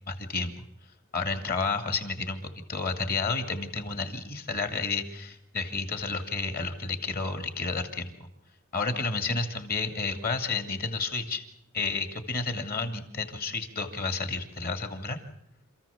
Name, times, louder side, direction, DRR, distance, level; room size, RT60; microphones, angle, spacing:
voice 1, 0.1-0.7 1.1-8.3 8.7-11.4 11.7-15.2, left 4 dB, 50° left, 7 dB, 2.4 m, -31 dB
27.5 x 15.0 x 7.1 m, 0.77 s
head